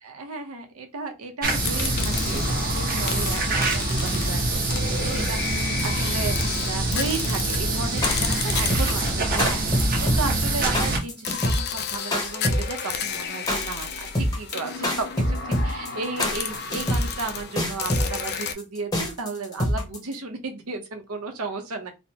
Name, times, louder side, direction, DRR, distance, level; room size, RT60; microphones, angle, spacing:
voice 1, 0.0-15.4 15.6-21.9, right 3 dB, 80° right, 5 dB, 0.8 m, -34 dB
sound 1, 1.4-11.0, right 2 dB, 40° right, 0.9 m, -25 dB
sound 2, 1.6-10.5 11.2-18.5, left 6 dB, 50° left, 0.4 m, -32 dB
sound 3, 7.9-20.1, equal, 15° left, 0.7 m, -25 dB
3.2 x 2.1 x 2.8 m, 0.26 s
head